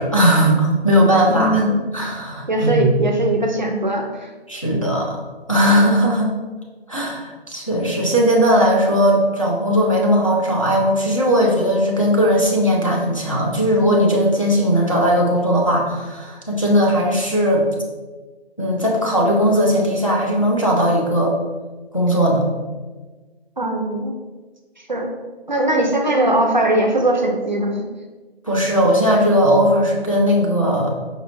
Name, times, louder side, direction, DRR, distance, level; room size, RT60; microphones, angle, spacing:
voice 1, 0.0-1.6 1.9-2.9 4.5-5.2 5.5-6.3 6.9-17.6 18.6-21.3 21.9-22.4 28.4-30.9, equal, 30° left, -3 dB, 0.4 m, -18 dB
voice 2, 1.3-1.8 2.5-4.3 23.6-24.1 24.9-25.1 25.5-27.8, right 1 dB, 45° right, 3 dB, 0.4 m, -20 dB
5.0 x 2.7 x 2.7 m, 1.3 s
figure-of-eight pair, 170°, 32 cm